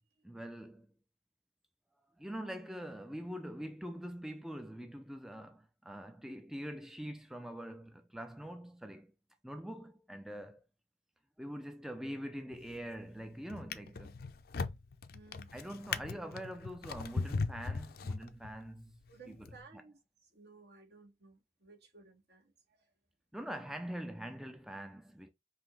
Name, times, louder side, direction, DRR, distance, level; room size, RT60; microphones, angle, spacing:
voice 1, 0.2-0.9 2.2-9.1 9.4-10.6 11.4-14.2 15.5-19.0 19.3-19.8 23.3-25.3, equal, ahead, 0.4 m, -44 dB
Drawer open or close, 12.5-13.0 13.5-18.7 19.4-19.6, left 4 dB, 60° left, 0.5 m, -39 dB
voice 2, 15.1-15.5 19.1-22.8, right 4 dB, 65° right, 1.9 m, -58 dB
5.6 x 2.7 x 3.2 m
head